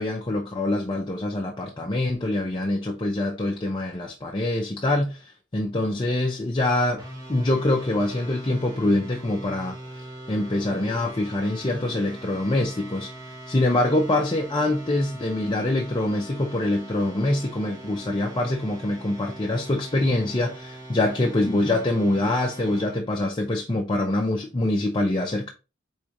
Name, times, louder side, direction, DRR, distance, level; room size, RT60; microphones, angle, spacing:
voice 1, 0.0-7.0 7.3-9.7 10.3-13.1 13.5-25.5, left 1 dB, 25° left, 0.5 m, -25 dB
sound 1, 7.0-23.0, right 1 dB, 20° right, 1.2 m, -42 dB
4.9 x 3.5 x 2.9 m
head